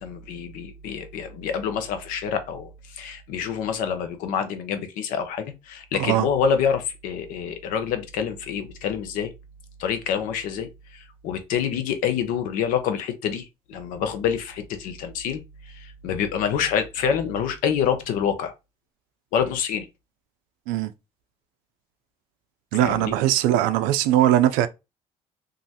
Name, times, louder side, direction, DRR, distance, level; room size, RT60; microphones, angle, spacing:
voice 1, 0.0-9.3 9.8-15.4 15.7-18.5 19.3-19.9 22.8-23.1, left 7 dB, 80° left, 0.7 m, -27 dB
voice 2, 5.9-6.3 20.7-20.9 22.7-24.7, right 13 dB, 85° right, 0.4 m, -20 dB
3.0 x 2.5 x 2.8 m
supercardioid pair, 80°, 14 cm